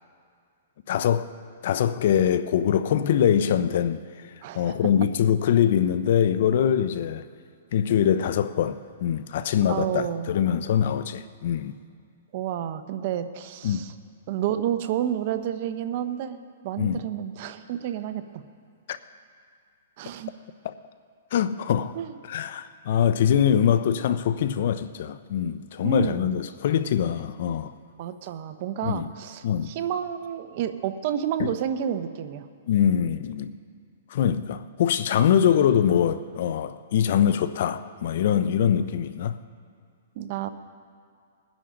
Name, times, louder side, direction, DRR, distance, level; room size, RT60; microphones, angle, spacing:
voice 1, 0.9-1.3 1.6-7.2 7.7-11.8 13.6-13.8 16.8-17.0 18.9-19.0 20.6-20.7 21.3-21.9 22.3-27.7 28.8-29.1 29.4-29.7 31.4-31.5 32.7-33.5 34.1-39.4, left 9 dB, 60° left, 13 dB, 0.6 m, -23 dB
voice 2, 4.4-4.8 9.7-10.3 12.3-13.9 14.3-16.4 16.6-18.2 20.0-20.3 22.0-22.1 25.8-26.4 28.0-32.5 35.3-35.5 40.2-40.5, right 10 dB, 45° right, 10 dB, 0.8 m, -30 dB
20.5 x 10.5 x 3.8 m, 2.3 s
hypercardioid pair, 145°, 0 cm